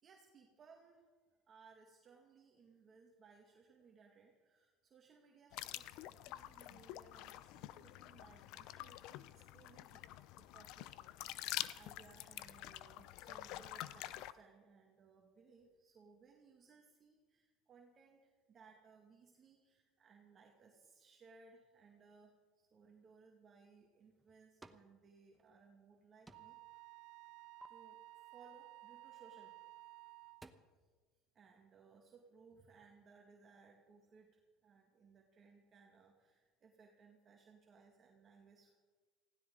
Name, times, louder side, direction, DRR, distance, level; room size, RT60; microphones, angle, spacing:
voice 1, 0.0-1.0 1.5-26.6 27.7-28.0 28.3-29.5 31.3-38.8, right 5 dB, 35° right, 0 dB, 2.1 m, -64 dB
sound 1, 5.5-14.3, left 15 dB, 65° left, 0.6 m, -47 dB
sound 2, 23.8-24.9 25.3-26.0 26.3-26.7 27.1-27.7 29.5-29.7 30.1-30.5, right 2 dB, 10° right, 1.0 m, -60 dB
Wind instrument woodwind instrument, 26.3-30.5, right 18 dB, 70° right, 0.4 m, -56 dB
19.5 x 16.0 x 3.9 m, 1.4 s
supercardioid pair, 115°, 0 cm